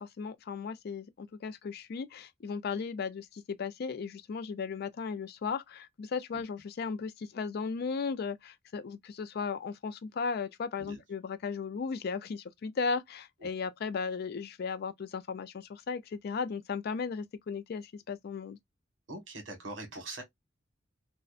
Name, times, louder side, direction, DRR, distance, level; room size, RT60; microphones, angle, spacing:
voice 1, 0.0-18.6, left 5 dB, 55° left, 0.4 m, -36 dB
voice 2, 19.1-20.2, right 2 dB, 75° right, 1.2 m, -42 dB
2.6 x 2.1 x 2.3 m
head